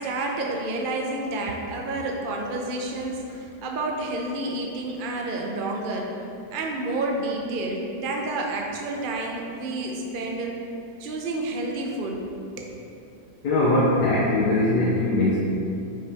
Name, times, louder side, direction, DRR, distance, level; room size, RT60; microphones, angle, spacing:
voice 1, 0.0-6.1 6.5-10.5 11.0-12.2 12.6-12.7, right 2 dB, 45° right, 0 dB, 0.7 m, -29 dB
voice 2, 13.4-15.4, left 2 dB, 70° left, -6 dB, 1.4 m, -21 dB
9.8 x 5.5 x 3.5 m, 2.7 s
omnidirectional pair, 1.9 m